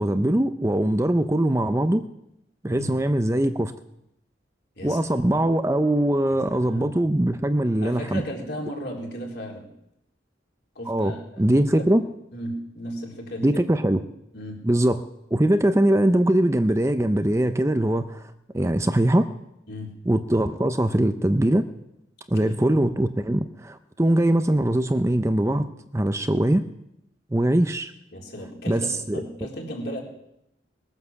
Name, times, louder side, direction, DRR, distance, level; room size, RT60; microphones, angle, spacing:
voice 1, 0.0-2.0 2.6-3.7 4.8-8.2 10.9-12.0 13.4-14.0 14.6-15.0 15.3-19.3 20.1-21.6 22.3-25.7 25.9-26.6 27.3-27.9 28.7-29.2, right 1 dB, 15° right, 9 dB, 0.6 m, -22 dB
voice 2, 6.5-6.9 7.8-9.7 10.8-11.5 11.8-11.9 12.3-13.6 14.3-14.6 19.7-19.9 22.4-22.6 28.1-30.0, equal, 55° left, -1 dB, 3.8 m, -35 dB
20.5 x 9.6 x 7.1 m, 0.81 s
head